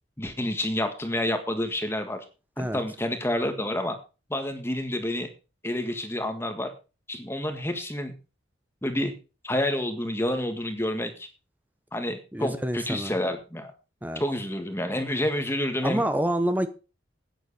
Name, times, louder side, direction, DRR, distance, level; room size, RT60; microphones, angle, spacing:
voice 1, 0.2-2.2 2.6-4.0 4.3-5.3 5.6-6.7 7.1-8.1 8.8-9.1 9.4-11.3 11.9-13.7 14.1-16.0, left 1 dB, 10° left, 1.7 m, -29 dB
voice 2, 12.3-13.1 14.0-14.2 15.8-16.7, right 1 dB, 10° right, 0.8 m, -27 dB
10.0 x 9.5 x 5.5 m
head